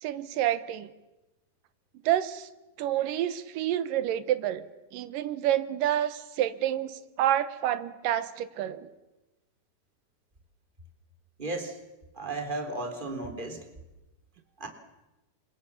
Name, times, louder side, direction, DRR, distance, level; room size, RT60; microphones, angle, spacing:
voice 1, 0.0-0.9 2.1-2.5 2.8-4.6 4.9-8.9, right 12 dB, 90° right, 13 dB, 2.8 m, -28 dB
voice 2, 11.4-11.8 12.2-13.6 14.6-14.7, right 2 dB, 15° right, 5 dB, 3.2 m, -34 dB
29.5 x 26.5 x 7.3 m, 1.0 s
omnidirectional pair, 3.8 m